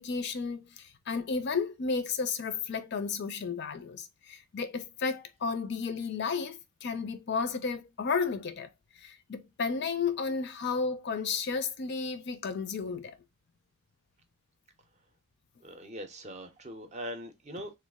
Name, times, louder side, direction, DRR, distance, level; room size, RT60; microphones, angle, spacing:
voice 1, 0.0-8.7 9.0-13.2, left 5 dB, 50° left, 0.4 m, -33 dB
voice 2, 15.6-17.7, equal, 30° right, 0.5 m, -41 dB
3.1 x 2.3 x 3.4 m
head